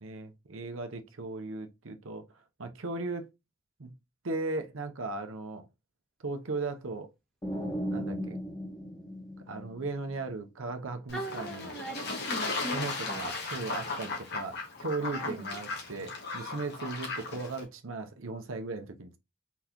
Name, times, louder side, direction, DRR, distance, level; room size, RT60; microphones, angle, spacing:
voice 1, 0.0-2.2 2.6-3.3 3.8-3.9 4.2-5.7 6.2-7.1 7.9-8.4 9.5-11.7 12.7-19.2, right 3 dB, 70° right, 0.8 m, -37 dB
sound 1, 7.4-10.2, equal, 20° left, 1.2 m, -36 dB
Fowl / Bird / Water, 11.1-17.6, left 3 dB, 55° left, 1.5 m, -36 dB
voice 2, 11.1-13.3 15.1-15.5, right 1 dB, 5° left, 1.6 m, -40 dB
4.1 x 4.0 x 2.9 m
head